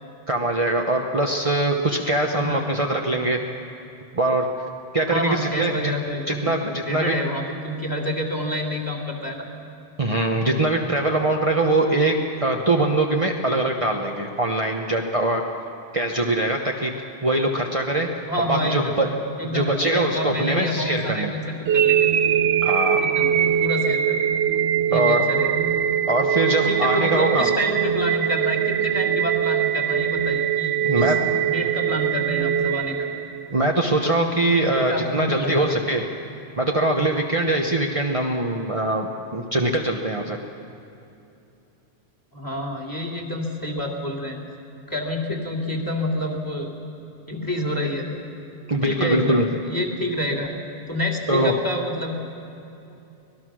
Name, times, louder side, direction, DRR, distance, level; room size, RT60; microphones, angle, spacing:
voice 1, 0.3-3.4 4.1-4.5 4.9-5.9 6.3-7.1 10.0-12.1 12.4-15.4 15.9-16.9 17.2-18.1 18.5-19.1 19.4-21.3 22.6-23.0 24.9-25.2 26.1-27.5 30.8-31.2 33.5-36.0 36.6-40.4 48.7-49.4 51.3-51.5, right 2 dB, 35° right, 1 dB, 1.1 m, -22 dB
voice 2, 2.3-2.7 5.1-9.5 18.3-19.0 19.4-22.1 23.0-24.3 24.9-25.6 26.6-31.1 31.5-33.1 34.7-35.8 42.3-44.4 44.9-46.7 47.3-48.1 48.7-50.5 50.9-52.1, left 1 dB, 20° left, -1 dB, 2.8 m, -28 dB
sound 1, 21.6-33.7, right 9 dB, 90° right, 1.0 m, -22 dB
25.0 x 19.0 x 6.3 m, 2.7 s
omnidirectional pair, 1.1 m